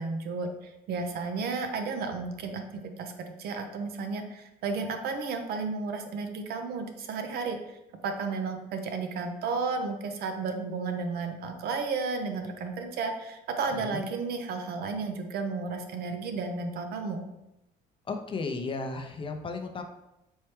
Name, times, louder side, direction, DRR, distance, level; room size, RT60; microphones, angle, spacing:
voice 1, 0.0-3.1 3.4-7.6 8.0-17.2, right 4 dB, 70° right, 6 dB, 0.6 m, -33 dB
voice 2, 13.7-14.0 18.1-19.8, left 3 dB, 30° left, 4 dB, 0.5 m, -34 dB
4.5 x 3.2 x 3.1 m, 0.90 s
cardioid pair, 110°, 17 cm